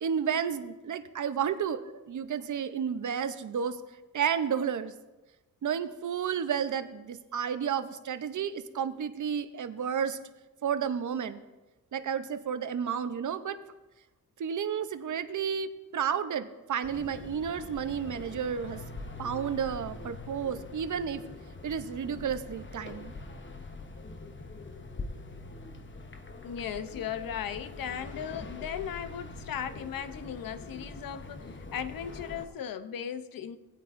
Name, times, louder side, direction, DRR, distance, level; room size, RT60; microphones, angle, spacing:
voice 1, 0.0-3.8 4.1-4.9 5.6-10.2 10.6-11.4 11.9-13.6 14.4-18.8 19.2-21.2 21.6-23.1, right 7 dB, 60° right, 0.7 m, -31 dB
sound 1, 16.8-32.5, left 2 dB, 35° left, 1.0 m, -43 dB
voice 2, 26.4-33.6, left 8 dB, 75° left, 0.7 m, -37 dB
18.0 x 8.9 x 2.6 m
cardioid pair, 75°, 34 cm